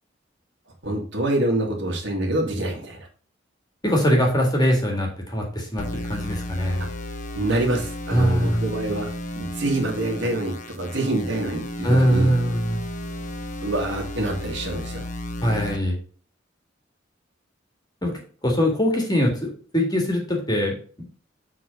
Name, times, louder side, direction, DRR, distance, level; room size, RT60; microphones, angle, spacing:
voice 1, 0.8-3.1 7.3-9.1 9.4-12.3 13.6-15.1, right 1 dB, 70° right, 1 dB, 2.2 m, -26 dB
voice 2, 3.8-6.9 8.1-8.7 11.8-12.8 15.4-16.0 18.0-18.1 18.4-20.7, equal, 20° left, 0 dB, 2.0 m, -22 dB
sound 1, 5.8-15.8, left 1 dB, 40° left, 0.9 m, -33 dB
7.4 x 4.1 x 5.2 m, 0.41 s
head